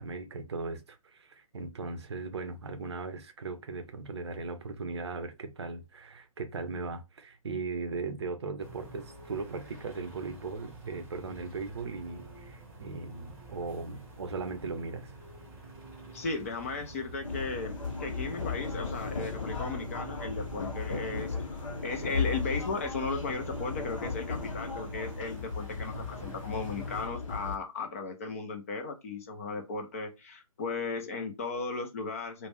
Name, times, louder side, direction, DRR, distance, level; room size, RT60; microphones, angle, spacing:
voice 1, 0.0-15.1, right 4 dB, 50° right, 0.6 m, -38 dB
sound 1, 8.6-27.1, right 2 dB, 10° right, 0.9 m, -47 dB
voice 2, 16.1-32.5, left 3 dB, 25° left, 0.4 m, -36 dB
sound 2, 17.2-27.6, left 5 dB, 65° left, 0.7 m, -36 dB
2.3 x 2.1 x 3.3 m
figure-of-eight pair, 140°, 18 cm